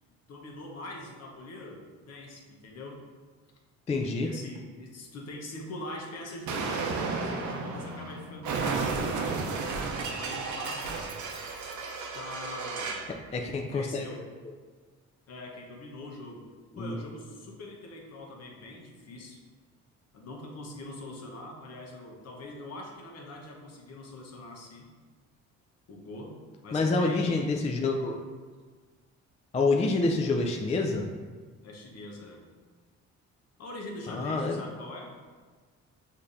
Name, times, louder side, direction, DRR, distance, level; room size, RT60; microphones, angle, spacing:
voice 1, 0.3-3.1 4.2-10.9 12.1-13.1 13.4-14.3 15.3-16.5 16.8-19.4 20.1-24.9 25.9-27.5 31.6-32.4 33.6-35.1, left 1 dB, 55° left, 0 dB, 0.9 m, -43 dB
voice 2, 3.9-4.3 13.3-14.0 16.8-16.9 26.7-28.2 29.5-31.1 34.1-34.6, left 3 dB, 20° left, 2 dB, 0.3 m, -27 dB
Explosion, 6.5-13.1, right 4 dB, 70° right, 0.6 m, -33 dB
6.4 x 2.8 x 2.5 m, 1.5 s
cardioid pair, 90°, 30 cm